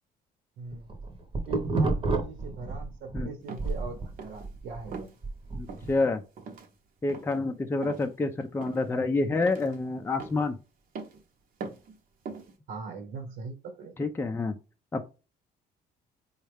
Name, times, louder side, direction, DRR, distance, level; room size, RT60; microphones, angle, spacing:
voice 1, 0.6-0.9 1.5-5.1 12.7-14.0, right 4 dB, 70° right, 1.3 m, -41 dB
sound 1, 0.7-3.2 3.6-6.0, right 3 dB, 30° right, 1.0 m, -30 dB
sound 2, 3.5-3.8 4.2-4.5 4.9-5.2 5.7-5.9 6.4-6.7 7.1-7.4 7.8-8.1 8.6-9.0 9.4-9.8 10.2-10.5 11.0-11.2 11.6-11.9 12.3-12.5, right 4 dB, 55° right, 0.9 m, -41 dB
voice 2, 5.5-6.2 7.0-10.6 14.0-14.6 14.9-15.0, left 3 dB, 15° left, 0.4 m, -28 dB
4.2 x 2.4 x 3.3 m
cardioid pair, 110°, 17 cm